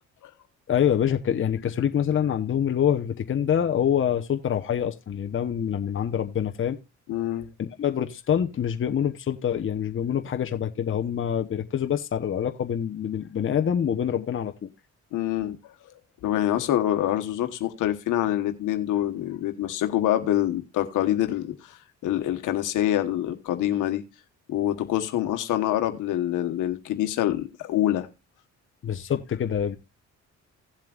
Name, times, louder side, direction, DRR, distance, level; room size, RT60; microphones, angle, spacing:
voice 1, 0.7-6.8 7.6-14.7 28.8-29.8, left 9 dB, 45° left, 0.9 m, -26 dB
voice 2, 7.1-7.4 15.1-15.6 16.2-24.0 24.5-28.1, left 12 dB, 85° left, 1.3 m, -26 dB
17.0 x 7.5 x 2.4 m
cardioid pair, 90°, 30 cm